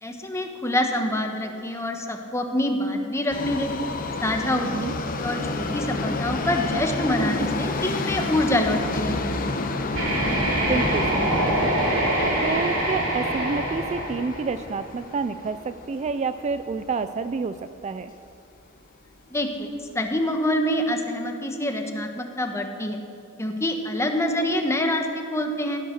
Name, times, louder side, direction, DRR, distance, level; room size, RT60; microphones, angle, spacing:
voice 1, 0.0-3.7 4.2-4.8 5.2-9.1 19.3-23.0 23.4-25.8, left 1 dB, 15° left, 4 dB, 1.1 m, -26 dB
Subway metro underground, 3.3-17.4 17.7-17.8 18.7-18.8 19.1-19.2 19.8-19.9, left 2 dB, 45° left, 0.9 m, -30 dB
voice 2, 4.5-4.9 10.7-11.6 12.4-18.1, right 4 dB, 35° right, 11 dB, 0.3 m, -29 dB
sound 1, 9.9-14.8, right 1 dB, 80° right, 3.1 m, -25 dB
15.5 x 9.1 x 6.5 m, 2.6 s
head